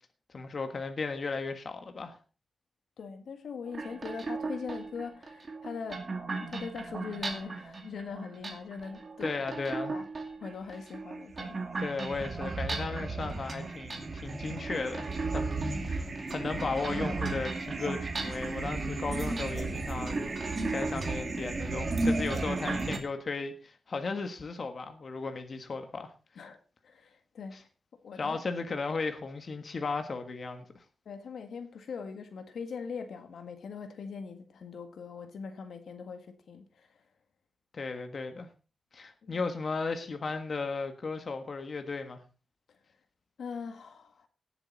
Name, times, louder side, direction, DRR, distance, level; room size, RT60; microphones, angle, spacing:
voice 1, 0.3-2.2 9.2-10.0 11.8-26.1 27.5-27.6 28.2-30.8 37.7-38.5 38.9-42.2, left 4 dB, 45° left, 1.5 m, -35 dB
voice 2, 3.0-9.3 9.9-10.0 10.4-11.6 15.7-16.0 26.4-27.6 27.9-28.4 31.1-37.0 39.2-39.4 42.7-42.8 43.4-44.3, left 5 dB, 85° left, 1.8 m, -41 dB
sound 1, 3.7-23.0, right 3 dB, 40° right, 2.4 m, -34 dB
17.5 x 8.0 x 4.1 m
wide cardioid pair, 135°, 0 cm